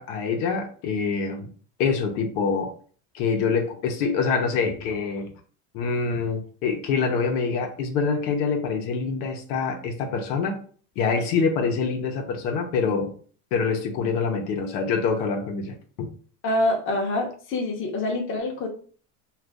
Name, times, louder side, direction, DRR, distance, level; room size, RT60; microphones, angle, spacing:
voice 1, 0.0-1.5 1.8-2.7 3.1-5.3 5.7-10.6 11.0-13.1 13.5-16.1, left 5 dB, 80° left, 0.8 m, -25 dB
voice 2, 16.4-18.7, left 1 dB, 30° left, 0.7 m, -25 dB
2.5 x 2.5 x 3.4 m
supercardioid pair, 125°, 45 cm